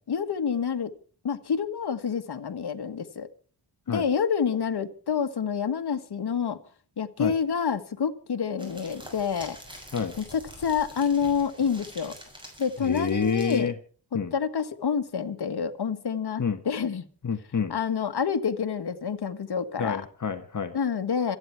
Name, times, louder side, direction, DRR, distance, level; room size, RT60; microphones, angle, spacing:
voice 1, 0.1-0.9 1.2-3.3 3.9-6.6 7.0-9.6 10.2-12.2 12.6-13.7 14.3-17.0 17.7-20.0 20.7-21.4, left 6 dB, 65° left, 9 dB, 1.6 m, -28 dB
sound 1, 8.6-13.6, equal, 10° right, 6.8 m, -46 dB
voice 2, 12.8-13.7 14.1-14.3 16.4-16.6 17.2-17.7 19.8-20.8, left 6 dB, 45° left, 8 dB, 1.4 m, -28 dB
27.0 x 9.8 x 4.6 m, 0.41 s
wide cardioid pair, 105°, 41 cm